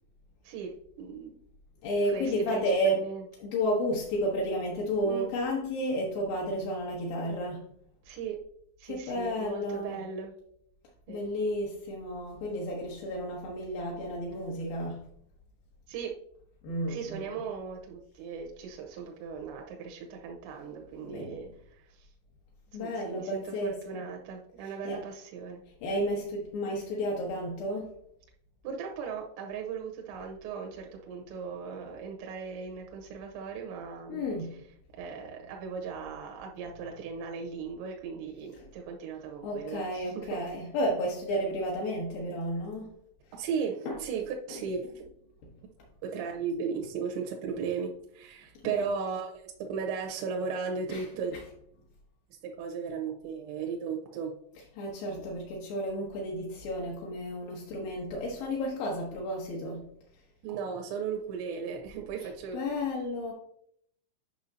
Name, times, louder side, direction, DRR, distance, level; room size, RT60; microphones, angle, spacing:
voice 1, 0.4-1.4 2.1-3.2 5.0-5.3 8.1-8.4 8.8-10.3 11.1-11.2 15.9-16.1 16.9-21.5 22.0-22.1 22.8-25.6 28.6-34.2 35.0-40.3 43.3-45.0 46.0-51.4 52.4-54.3 60.4-62.6, right 6 dB, 85° right, 1 dB, 2.8 m, -37 dB
voice 2, 1.8-3.0 3.4-7.7 8.8-10.1 11.1-15.0 16.6-17.3 20.6-21.4 22.7-24.0 24.6-25.0 25.8-27.9 34.1-34.5 38.6-38.7 39.4-43.0 43.9-44.0 45.4-45.5 48.6-48.8 50.9-51.0 51.3-51.4 54.8-59.9 62.5-63.3, equal, 75° left, -3 dB, 2.2 m, -32 dB
9.4 x 5.5 x 2.7 m, 0.70 s
omnidirectional pair, 5.4 m